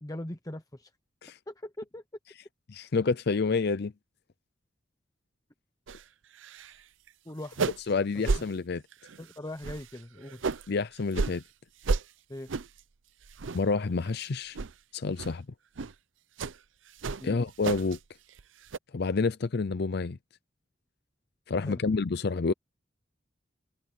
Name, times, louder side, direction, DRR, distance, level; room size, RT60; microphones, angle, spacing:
voice 1, 0.0-0.9 1.5-2.0 7.2-7.7 8.1-8.4 9.2-10.4 12.3-12.5 17.2-17.4 21.6-21.8, left 1 dB, 20° left, 0.9 m, -41 dB
voice 2, 2.7-3.9 7.9-8.8 10.7-11.4 13.5-14.6 14.9-15.5 17.2-18.0 18.9-20.2 21.5-22.5, left 4 dB, 60° left, 0.6 m, -28 dB
sound 1, 5.9-6.0 6.3-6.8 7.1-7.2 7.4-7.9 8.2-8.4 8.9-9.2 9.6-10.7 11.1-11.4 11.8-12.0 12.5-12.8 13.2-13.8 14.1-14.2 14.5-14.7 15.2-15.3 15.7-15.9 16.4-16.6 17.0-18.0 18.3-18.8, right 4 dB, 90° right, 0.7 m, -32 dB
head